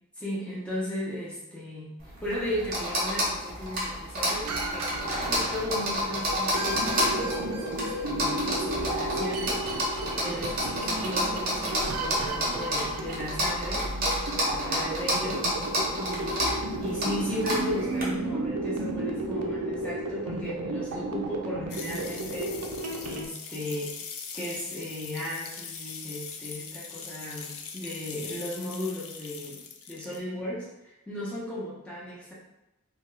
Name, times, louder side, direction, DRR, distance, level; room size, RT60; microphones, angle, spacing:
voice 1, 0.2-4.9 5.3-13.9 14.5-15.5 16.0-22.7 23.0-24.0 24.3-29.6 29.9-32.3, left 1 dB, 5° left, -8 dB, 0.7 m, -36 dB
sound 1, 2.0-18.0, equal, 40° right, 0.8 m, -30 dB
sound 2, 4.4-23.3, right 2 dB, 85° right, 0.4 m, -33 dB
sound 3, 21.7-30.2, left 6 dB, 65° left, 0.4 m, -41 dB
2.7 x 2.3 x 3.2 m, 0.94 s
head